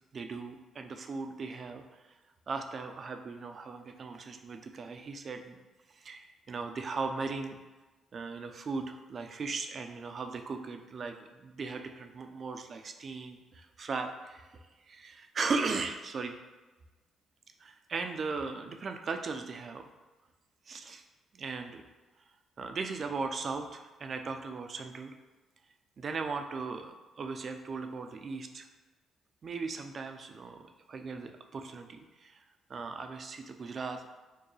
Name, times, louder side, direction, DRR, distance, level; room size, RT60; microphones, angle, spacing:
voice 1, 0.1-2.0 2.5-5.6 5.9-7.6 8.1-14.6 14.9-16.4 17.6-19.9 20.7-21.0 21.3-21.8 22.6-25.1 26.0-28.7 29.4-32.4 32.7-34.0, right 4 dB, 45° right, 6 dB, 0.4 m, -38 dB
4.5 x 2.2 x 3.1 m, 1.2 s
cardioid pair, 90°, 0 cm